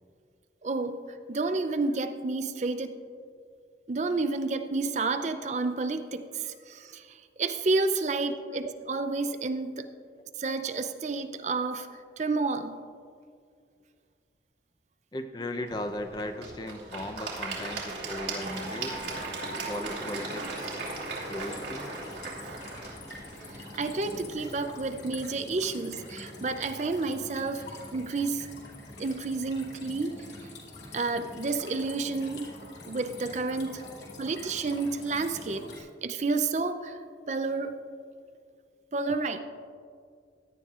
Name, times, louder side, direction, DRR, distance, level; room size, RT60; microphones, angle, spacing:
voice 1, 0.6-1.0 1.3-3.0 3.9-9.9 10.4-11.9 12.2-12.8 23.5-27.6 27.9-28.5 29.0-30.3 30.9-32.5 32.9-33.8 34.2-37.0 37.3-37.8 38.9-39.4, right 3 dB, 40° right, 9 dB, 0.4 m, -30 dB
voice 2, 15.1-19.0 19.7-20.8 21.2-21.9 33.8-34.0, left 1 dB, 25° left, 7 dB, 0.6 m, -37 dB
Applause / Crowd, 15.7-24.7, right 3 dB, 85° right, 2.6 m, -38 dB
sound 1, 18.4-35.8, left 2 dB, 80° left, 2.5 m, -45 dB
16.5 x 11.0 x 2.4 m, 2.2 s
head